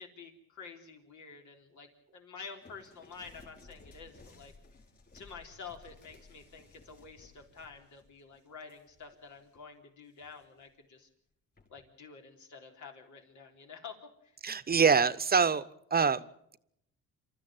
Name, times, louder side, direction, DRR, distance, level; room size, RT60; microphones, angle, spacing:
voice 1, 0.0-4.5 5.1-11.1 11.7-14.0 14.2-14.4, left 5 dB, 75° left, 3 dB, 3.8 m, -49 dB
sound 1, 2.6-9.6 10.1-10.7 11.6-11.9, left 3 dB, 30° left, 5.5 m, -58 dB
voice 2, 14.4-16.2, right 5 dB, 30° right, 13 dB, 0.9 m, -25 dB
27.5 x 13.5 x 9.0 m, 0.77 s
cardioid pair, 90°, 30 cm